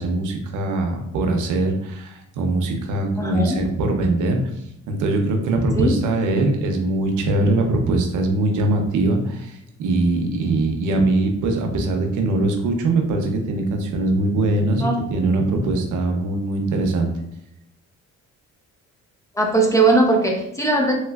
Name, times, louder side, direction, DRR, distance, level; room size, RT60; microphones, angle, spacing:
voice 1, 0.0-4.4 4.9-17.1, right 2 dB, 80° right, 4 dB, 0.7 m, -22 dB
voice 2, 3.1-3.6 5.7-6.0 14.8-15.0 19.3-20.9, right 2 dB, 10° left, -1 dB, 0.7 m, -19 dB
3.1 x 3.0 x 2.3 m, 0.79 s
cardioid pair, 90°, 30 cm